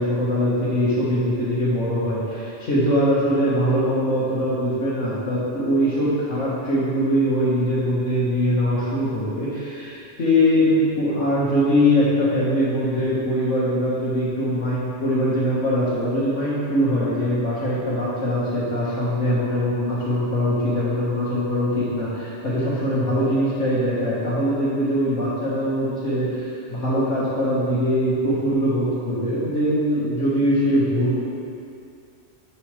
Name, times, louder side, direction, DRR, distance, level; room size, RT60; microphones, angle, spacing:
voice 1, 0.0-31.2, equal, 80° left, -12 dB, 2.0 m, -22 dB
11.0 x 6.9 x 3.3 m, 2.5 s
omnidirectional pair, 1.2 m